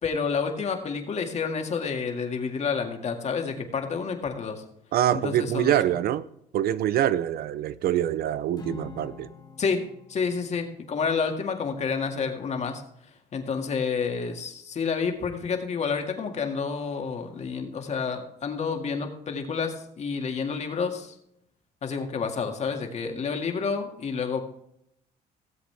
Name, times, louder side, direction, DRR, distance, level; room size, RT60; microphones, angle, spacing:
voice 1, 0.0-4.6 5.1-5.7 9.6-9.8 10.1-12.8 13.3-21.1 21.8-24.4, left 5 dB, 40° left, 2.1 m, -29 dB
voice 2, 4.9-6.2 6.5-9.3, right 11 dB, 65° right, 0.7 m, -25 dB
Acoustic guitar / Strum, 8.6-13.0, left 7 dB, 25° left, 2.2 m, -48 dB
17.0 x 7.8 x 3.5 m
cardioid pair, 110°, 17 cm